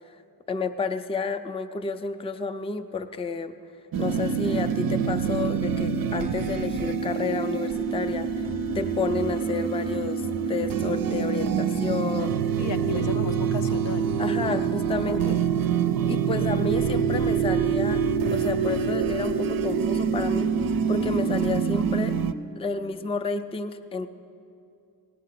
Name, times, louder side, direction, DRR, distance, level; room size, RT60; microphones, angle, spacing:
voice 1, 0.5-3.5 4.0-8.4 8.7-12.4 12.9-13.0 14.2-15.4 16.1-18.0 18.3-22.2 22.6-24.1, left 4 dB, 15° left, 9 dB, 0.4 m, -30 dB
sound 1, 3.9-22.3, right 6 dB, 55° right, 0.5 m, -26 dB
voice 2, 12.6-14.1 15.1-15.5, left 4 dB, 85° left, 8 dB, 0.8 m, -34 dB
17.5 x 9.3 x 5.7 m, 2.5 s
wide cardioid pair, 130°, 41 cm